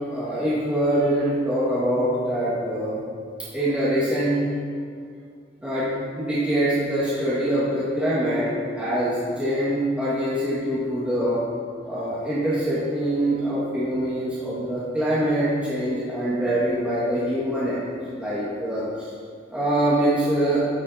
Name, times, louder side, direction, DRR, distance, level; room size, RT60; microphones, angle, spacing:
voice 1, 0.1-3.0 3.5-4.4 5.6-8.5 8.7-11.4 11.8-17.8 18.1-19.1 19.5-20.6, right 1 dB, 5° right, -11 dB, 1.7 m, -24 dB
13.5 x 7.3 x 2.7 m, 2.2 s
head